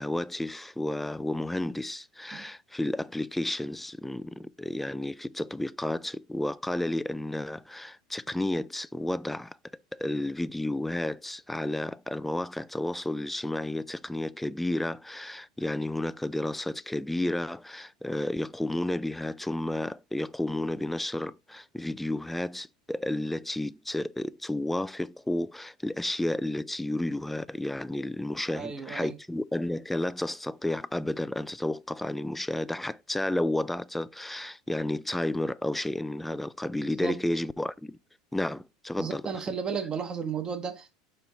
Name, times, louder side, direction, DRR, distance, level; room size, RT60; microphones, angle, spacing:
voice 1, 0.0-9.6 9.9-38.0 38.3-39.4, left 1 dB, 5° left, 0.3 m, -32 dB
voice 2, 28.5-29.2 37.0-37.2 39.0-40.9, right 6 dB, 25° right, 1.1 m, -34 dB
5.4 x 4.5 x 3.8 m
figure-of-eight pair, 75°, 3 cm